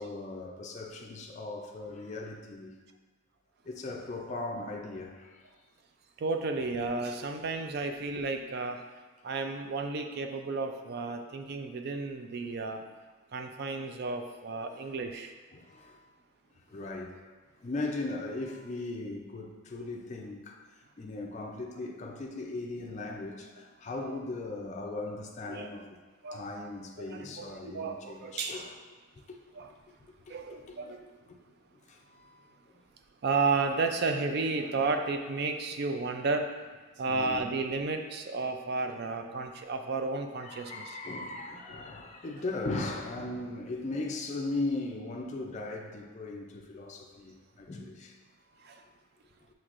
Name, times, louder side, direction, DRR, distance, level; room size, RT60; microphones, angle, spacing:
voice 1, 0.0-2.8 3.7-5.4 15.5-16.0 16.7-17.2 17.6-20.6 21.0-26.0 26.3-28.7 29.3-29.4 30.7-30.9 31.9-32.4 37.1-37.5 40.4-48.2, left 2 dB, 35° left, 0.4 m, -38 dB
voice 2, 6.2-8.8 9.2-12.8 13.3-15.3 24.0-24.2 25.5-25.7 26.2-26.4 27.0-28.5 29.5-29.7 30.3-31.0 33.2-36.5 37.0-41.0 48.6-48.8, right 3 dB, 50° right, 0.3 m, -32 dB
6.1 x 3.2 x 2.5 m
head